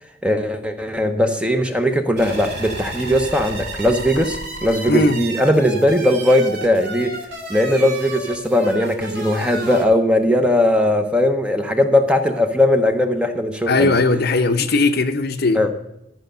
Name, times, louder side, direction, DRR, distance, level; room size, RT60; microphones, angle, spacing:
voice 1, 0.2-7.1 7.5-13.9 15.5-15.9, left 1 dB, 5° right, 0.7 m, -19 dB
sound 1, 2.2-9.8, right 2 dB, 55° right, 2.3 m, -32 dB
voice 2, 4.9-5.2 13.7-15.7, left 3 dB, 50° left, 0.7 m, -18 dB
12.5 x 5.2 x 6.6 m
head